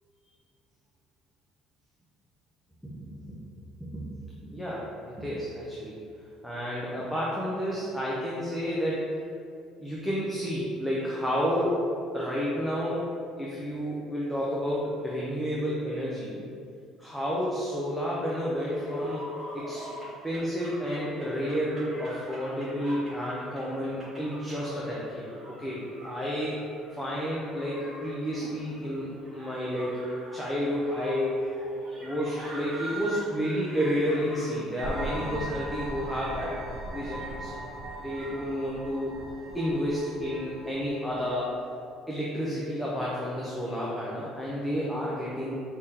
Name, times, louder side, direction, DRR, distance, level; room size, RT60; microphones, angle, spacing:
voice 1, 2.8-6.0 6.4-9.1 9.8-11.9 12.1-13.1 13.4-16.4 17.0-19.2 19.5-19.9 20.2-26.6 26.9-30.0 30.3-31.5 32.0-36.5 36.9-37.5 38.0-39.1 39.5-41.5 42.1-45.5, equal, 5° left, -6 dB, 0.5 m, -31 dB
sound 1, 18.5-38.4, equal, 15° right, 1.2 m, -43 dB
sound 2, 34.8-41.5, right 1 dB, 65° right, 1.1 m, -39 dB
4.8 x 3.5 x 2.8 m, 2.4 s
cardioid pair, 155°, 0 cm